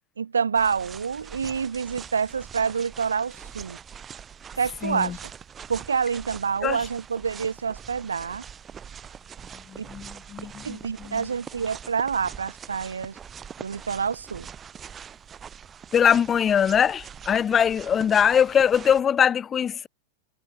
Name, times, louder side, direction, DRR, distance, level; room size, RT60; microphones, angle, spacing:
voice 1, 0.2-3.8 4.6-5.2 5.7-8.4 9.8-9.9 10.6-13.2 13.6-14.5, right 6 dB, 70° right, 1.6 m, -27 dB
sound 1, 0.5-19.0, right 7 dB, 20° right, 7.2 m, -43 dB
voice 2, 4.8-5.2 6.6-6.8 9.5-11.2 15.9-19.9, left 8 dB, 25° left, 1.7 m, -22 dB
figure-of-eight pair, 90°, 0 cm